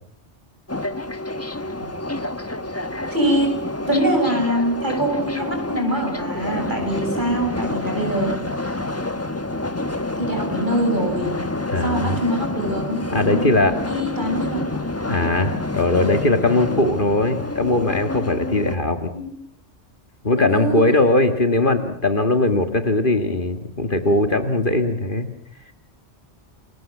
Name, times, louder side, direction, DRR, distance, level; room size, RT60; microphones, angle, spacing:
sound 1, 0.7-18.8, left 2 dB, 15° left, 1.1 m, -28 dB
voice 1, 3.1-3.5 3.9-8.8 10.2-11.3 11.8-13.0 13.3-14.8 19.1-19.3 20.4-20.8, equal, 45° right, 3 dB, 8.0 m, -24 dB
voice 2, 11.7-12.2 13.1-13.7 15.1-19.1 20.2-25.3, left 2 dB, 50° left, 7 dB, 2.1 m, -20 dB
29.5 x 23.5 x 7.3 m, 0.65 s
omnidirectional pair, 1.1 m